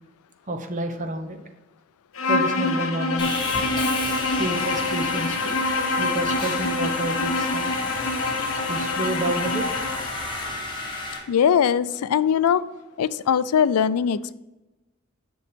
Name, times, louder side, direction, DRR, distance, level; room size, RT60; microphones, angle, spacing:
voice 1, 0.5-1.4 2.2-3.3 4.4-5.5 6.0-7.7 8.7-9.7, right 1 dB, 35° right, 6 dB, 0.8 m, -29 dB
Bowed string instrument, 2.1-10.1, left 3 dB, 70° left, 1.0 m, -26 dB
Sawing, 3.2-11.2, left 2 dB, 20° left, 1.6 m, -32 dB
voice 2, 11.3-12.6 13.0-14.3, left 8 dB, 90° left, 16 dB, 0.4 m, -21 dB
6.9 x 6.2 x 5.1 m, 1.1 s
head